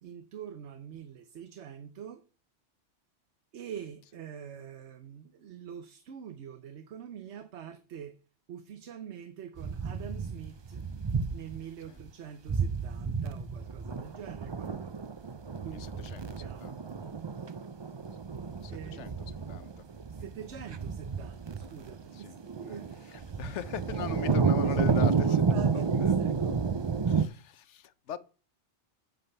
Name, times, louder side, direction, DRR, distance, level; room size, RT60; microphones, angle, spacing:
voice 1, 0.0-2.2 3.5-8.2 8.5-10.8 11.3-15.2 15.6-16.8 18.7-19.1 20.1-23.1 24.0-26.6, right 8 dB, 70° right, 1.1 m, -44 dB
sound 1, 9.6-11.6 12.0-12.1 12.5-27.3, right 5 dB, 40° right, 0.4 m, -31 dB
voice 2, 15.8-16.7 18.6-19.1 19.5-19.7 22.1-22.4 22.7-22.8 23.1-25.4 26.0-26.1 27.1-28.2, left 9 dB, 75° left, 1.0 m, -40 dB
8.5 x 7.9 x 5.4 m
omnidirectional pair, 1.2 m